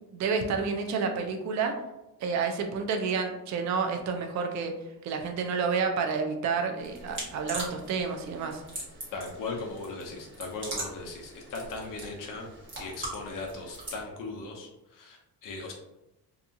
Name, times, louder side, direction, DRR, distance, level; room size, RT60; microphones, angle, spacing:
voice 1, 0.1-1.7 2.2-4.7 5.0-8.6, right 5 dB, 50° right, 4 dB, 0.4 m, -29 dB
Sticky Sounds, 6.8-14.0, right 1 dB, 30° right, 1.0 m, -41 dB
voice 2, 9.1-12.5 12.8-15.7, left 3 dB, 60° left, 1 dB, 0.6 m, -38 dB
2.8 x 2.3 x 2.5 m, 0.96 s
cardioid pair, 140°, 37 cm